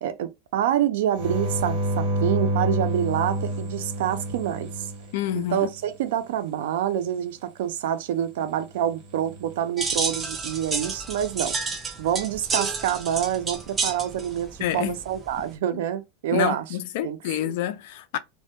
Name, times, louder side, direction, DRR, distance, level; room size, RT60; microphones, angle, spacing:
voice 1, 0.0-4.9 5.3-11.6 12.0-16.6 17.0-17.2 17.4-17.5, right 10 dB, 80° right, 0.4 m, -27 dB
sound 1, 1.1-5.8 9.0-9.6, right 1 dB, 65° right, 1.0 m, -28 dB
voice 2, 5.1-5.7 14.6-15.0 15.7-15.8 16.3-18.2, left 12 dB, 65° left, 0.3 m, -28 dB
sound 2, 9.8-15.5, right 4 dB, 20° right, 0.5 m, -30 dB
2.1 x 2.1 x 2.8 m
supercardioid pair, 150°, 0 cm